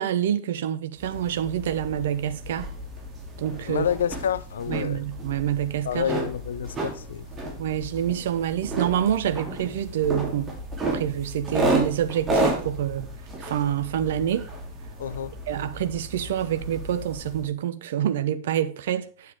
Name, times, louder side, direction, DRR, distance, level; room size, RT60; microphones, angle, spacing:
voice 1, 0.0-2.7 3.4-3.9 4.7-6.1 7.6-10.5 10.9-13.1 13.4-14.5 15.5-19.3, right 10 dB, 60° right, 0.9 m, -27 dB
sound 1, 1.0-17.5, right 2 dB, 20° right, 2.9 m, -32 dB
voice 2, 3.7-5.0 5.8-7.3 15.0-15.3, left 8 dB, 65° left, 0.5 m, -28 dB
9.5 x 7.6 x 3.5 m
figure-of-eight pair, 90°, 0 cm